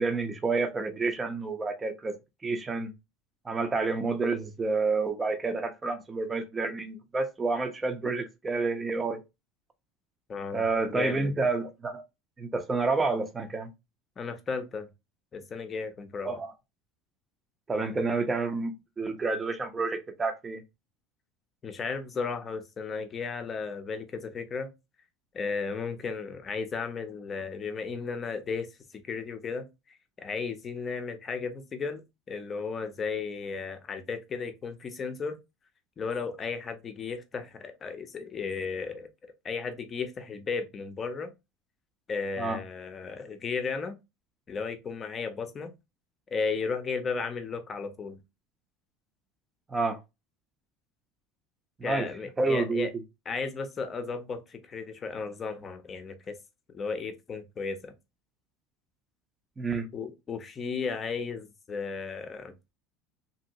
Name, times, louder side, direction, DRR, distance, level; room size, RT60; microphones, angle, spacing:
voice 1, 0.0-2.1 2.4-2.9 3.5-9.2 10.5-12.0 12.4-13.7 16.3-16.5 17.7-20.6 42.4-42.6 49.7-50.0 51.8-52.1 52.4-52.9 59.6-59.9, right 3 dB, 20° right, 0.6 m, -29 dB
voice 2, 10.3-11.4 14.2-14.9 15.3-16.4 21.6-24.7 25.3-28.7 28.9-35.4 36.0-41.3 42.1-44.0 44.5-45.7 46.3-48.2 51.8-52.9 53.3-56.4 56.7-57.9 59.9-62.5, left 5 dB, 30° left, 0.6 m, -34 dB
2.8 x 2.7 x 2.6 m
supercardioid pair, 115°, 0 cm